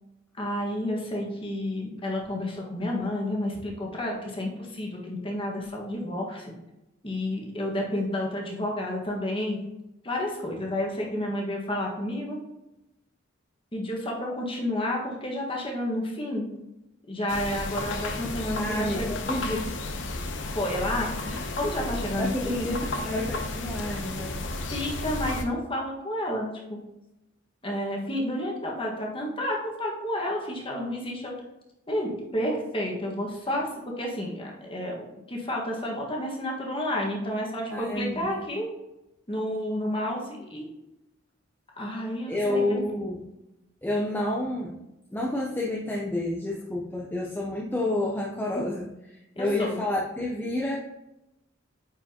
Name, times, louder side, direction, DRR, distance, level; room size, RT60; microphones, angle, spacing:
voice 1, 0.4-6.5 7.0-9.6 10.0-12.4 13.7-16.4 17.1-19.1 20.5-21.1 21.6-22.7 24.7-26.8 27.6-31.3 31.9-33.7 34.0-38.7 39.3-40.7 41.8-42.8 49.3-49.8, left 1 dB, 25° left, -1 dB, 1.5 m, -30 dB
sound 1, 17.3-25.5, left 2 dB, 65° left, 0.8 m, -33 dB
voice 2, 18.6-19.8 21.3-21.4 22.2-24.4 37.7-38.5 42.3-43.2 43.8-44.8 45.1-50.8, left 1 dB, 10° left, -3 dB, 0.6 m, -29 dB
9.4 x 4.8 x 2.9 m, 0.94 s
head